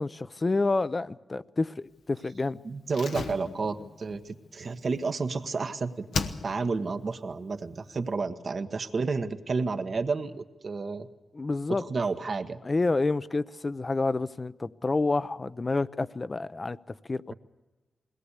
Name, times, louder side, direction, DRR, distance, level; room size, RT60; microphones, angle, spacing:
voice 1, 0.0-2.6 11.3-11.8 12.6-16.8 17.1-17.3, left 3 dB, 40° left, 0.6 m, -28 dB
voice 2, 2.6-6.1 6.4-11.1 11.7-12.6, right 4 dB, 60° right, 1.2 m, -31 dB
Slam, 2.9-5.6 6.1-6.9 7.1-7.2, left 4 dB, 85° left, 1.0 m, -36 dB
21.5 x 18.5 x 8.3 m
cardioid pair, 55°, 0 cm